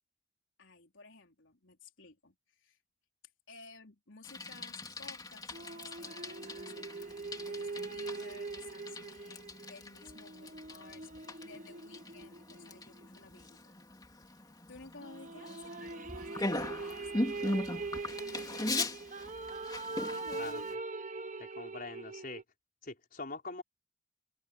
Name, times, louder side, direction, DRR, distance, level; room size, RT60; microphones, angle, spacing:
voice 1, 0.6-2.8 3.5-13.8 14.2-18.7 20.1-20.7, left 3 dB, 80° left, 3.8 m, -55 dB
Bicycle, 4.2-20.7, left 2 dB, 20° left, 2.8 m, -40 dB
sound 1, 5.5-13.2 15.0-22.4, right 3 dB, 40° right, 1.2 m, -42 dB
voice 2, 21.4-22.4 22.8-23.6, left 3 dB, 45° left, 4.8 m, -43 dB
head